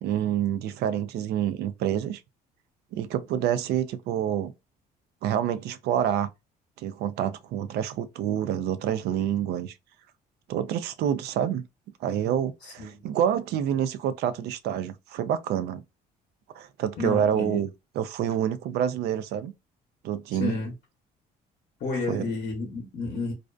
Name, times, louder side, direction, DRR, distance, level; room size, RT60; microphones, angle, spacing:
voice 1, 0.0-2.2 2.9-4.5 5.2-6.3 6.8-9.7 10.5-11.6 12.0-15.8 16.5-17.7 18.0-19.5 20.0-20.6 22.1-22.2, right 10 dB, 75° right, 0.4 m, -27 dB
voice 2, 17.0-17.7 20.3-20.7 21.8-23.3, left 3 dB, 55° left, 0.8 m, -31 dB
2.4 x 2.2 x 2.4 m
cardioid pair, 110°, 17 cm